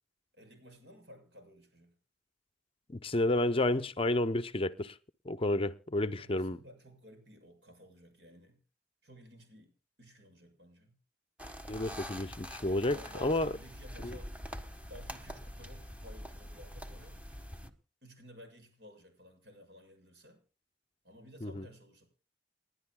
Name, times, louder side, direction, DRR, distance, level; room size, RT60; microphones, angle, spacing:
voice 1, 0.3-2.0 6.2-8.6 9.0-10.9 12.9-14.3 14.9-17.2 18.0-20.4 21.0-22.1, equal, 65° right, 6.8 m, -55 dB
voice 2, 2.9-5.0 5.2-6.6 11.7-13.5 14.0-14.2 21.4-21.6, left 1 dB, 30° left, 0.6 m, -31 dB
sound 1, 11.4-17.7, equal, 10° right, 1.4 m, -45 dB
29.5 x 11.0 x 2.2 m
head